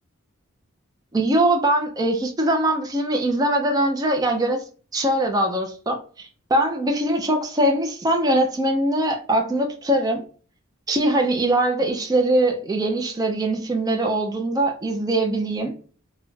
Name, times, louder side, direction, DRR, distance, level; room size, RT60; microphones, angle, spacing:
voice 1, 1.1-4.6 4.9-10.2 10.9-15.7, right 1 dB, 20° right, 0.4 m, -22 dB
2.4 x 2.1 x 3.0 m
head